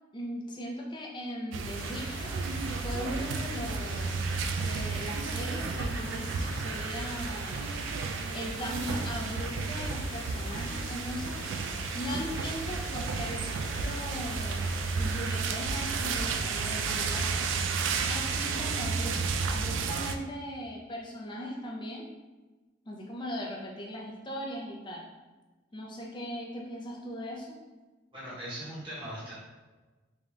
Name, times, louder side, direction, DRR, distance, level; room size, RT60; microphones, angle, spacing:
voice 1, 0.1-2.3 2.8-7.7 8.3-11.4 11.9-13.4 13.7-17.3 18.1-19.2 19.5-22.1 22.9-25.1 25.7-27.6, equal, 25° left, -2 dB, 0.6 m, -39 dB
sound 1, 1.5-20.2, right 4 dB, 90° right, 0.3 m, -32 dB
sound 2, 1.7-18.8, left 2 dB, 80° left, 0.8 m, -45 dB
voice 2, 28.1-29.3, equal, 30° right, -10 dB, 1.1 m, -39 dB
3.5 x 2.5 x 3.3 m, 1.2 s
head